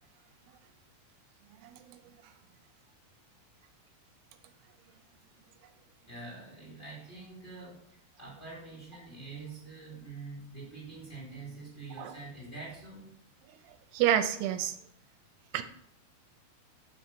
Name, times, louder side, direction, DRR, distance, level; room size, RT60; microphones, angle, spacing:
voice 1, 1.6-2.0 12.0-12.1 13.9-14.8 15.5-15.6, right 11 dB, 85° right, 9 dB, 2.7 m, -28 dB
voice 2, 6.0-13.1, right 3 dB, 15° left, -6 dB, 3.5 m, -45 dB
7.0 x 5.8 x 6.2 m, 0.66 s
omnidirectional pair, 4.6 m